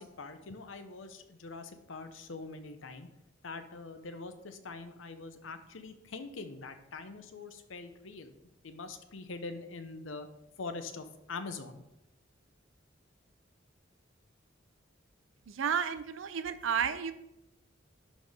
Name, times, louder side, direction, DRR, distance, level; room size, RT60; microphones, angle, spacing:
voice 1, 0.0-3.1 3.4-8.3 8.6-10.3 10.6-11.8, left 3 dB, 80° left, 9 dB, 0.8 m, -43 dB
voice 2, 15.5-17.1, right 7 dB, 75° right, 13 dB, 0.4 m, -32 dB
11.5 x 4.2 x 3.5 m, 0.87 s
head